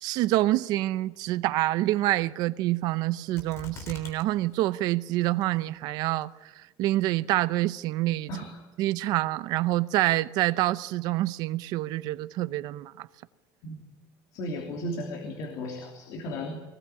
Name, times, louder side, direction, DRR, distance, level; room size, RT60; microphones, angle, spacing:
voice 1, 0.0-8.3 8.8-13.1, right 16 dB, 55° right, 0.7 m, -27 dB
sound 1, 3.3-4.2 4.5-4.6 5.2-5.7 6.2-6.3, left 3 dB, 35° left, 3.5 m, -43 dB
voice 2, 14.3-16.6, left 1 dB, 50° left, 3.1 m, -35 dB
22.5 x 19.0 x 9.6 m
cardioid pair, 180°, 8 cm